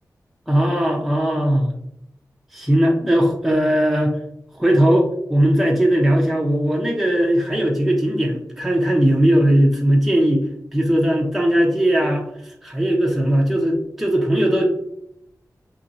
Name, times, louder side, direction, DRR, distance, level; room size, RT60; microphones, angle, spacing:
voice 1, 0.5-1.7 2.5-4.2 4.6-10.5 10.7-14.8, right 1 dB, 5° right, -1 dB, 0.4 m, -18 dB
2.7 x 2.7 x 2.6 m, 0.77 s
wide cardioid pair, 90°, 7 cm